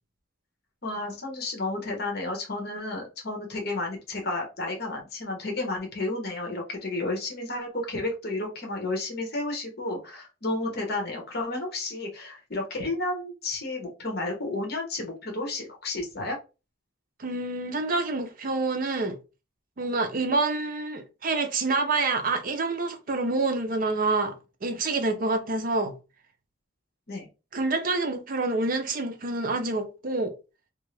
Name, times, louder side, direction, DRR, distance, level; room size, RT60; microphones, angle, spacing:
voice 1, 0.8-16.4 27.1-27.3, left 2 dB, 55° left, 1.0 m, -32 dB
voice 2, 17.2-19.2 19.8-24.4 24.6-25.9 27.5-30.3, right 3 dB, 45° right, 0.5 m, -27 dB
2.7 x 2.4 x 3.1 m
head